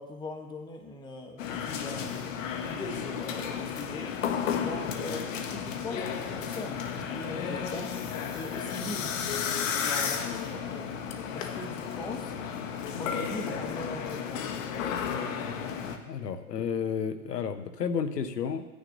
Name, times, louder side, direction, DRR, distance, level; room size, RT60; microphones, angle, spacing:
voice 1, 0.0-2.1 2.6-4.2 4.6-6.9 7.1-8.0 8.3-9.2 9.8-10.9 11.3-12.3 13.0-14.5, left 2 dB, 10° left, 4 dB, 0.9 m, -40 dB
sound 1, 1.4-16.0, left 7 dB, 55° left, 1.2 m, -33 dB
voice 2, 16.1-18.6, left 7 dB, 90° left, 10 dB, 1.1 m, -31 dB
15.5 x 9.8 x 2.7 m, 1.1 s
hypercardioid pair, 130°, 47 cm